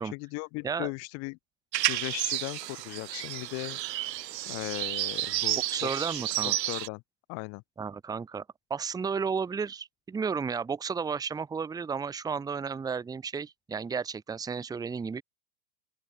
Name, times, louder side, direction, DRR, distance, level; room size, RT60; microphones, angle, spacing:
voice 1, 0.1-1.4 1.9-3.8 4.5-6.2 6.4-7.0 7.3-7.6, left 30 dB, 30° left, 1.2 m, -37 dB
sound 1, 1.7-6.9, right 14 dB, 75° right, 0.9 m, -31 dB
voice 2, 5.7-6.6 7.8-8.4 8.7-15.2, right 5 dB, 10° right, 1.3 m, -33 dB
open air
hypercardioid pair, 145°, 50 cm